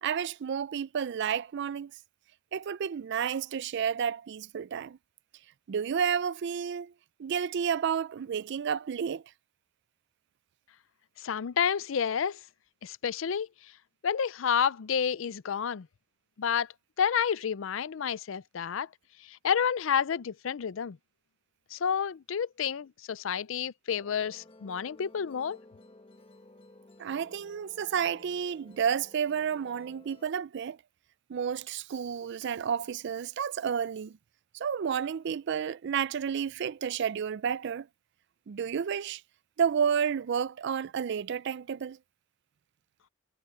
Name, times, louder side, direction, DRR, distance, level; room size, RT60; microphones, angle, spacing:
voice 1, 0.0-1.9 2.5-5.0 5.7-6.9 7.2-9.2 27.0-30.8 31.3-34.2 34.5-37.9 38.5-39.2 39.6-42.0, right 7 dB, 60° right, 0.4 m, -31 dB
voice 2, 11.2-12.4 12.8-13.5 14.0-15.9 16.4-16.7 17.0-18.9 19.3-21.0 21.7-25.6, left 7 dB, 70° left, 0.5 m, -30 dB
Musical instrument, 23.9-30.3, left 2 dB, 30° left, 1.4 m, -55 dB
head